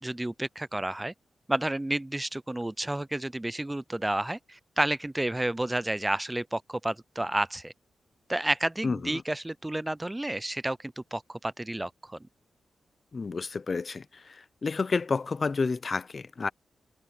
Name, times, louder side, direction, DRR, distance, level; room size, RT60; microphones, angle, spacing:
voice 1, 0.0-1.1 1.5-7.7 8.3-12.2, right 1 dB, 10° right, 0.4 m, -31 dB
voice 2, 8.8-9.2 13.1-16.5, left 4 dB, 40° left, 0.7 m, -30 dB
cardioid pair, 100°, 0 cm